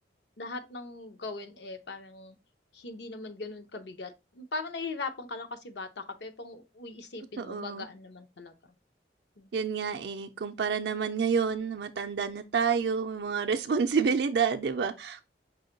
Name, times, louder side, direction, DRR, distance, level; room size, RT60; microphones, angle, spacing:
voice 1, 0.4-2.4 2.7-8.5 9.4-9.5, left 3 dB, 70° left, 0.7 m, -40 dB
voice 2, 7.4-7.9 9.5-15.3, right 6 dB, 65° right, 0.4 m, -29 dB
5.5 x 2.2 x 3.8 m
head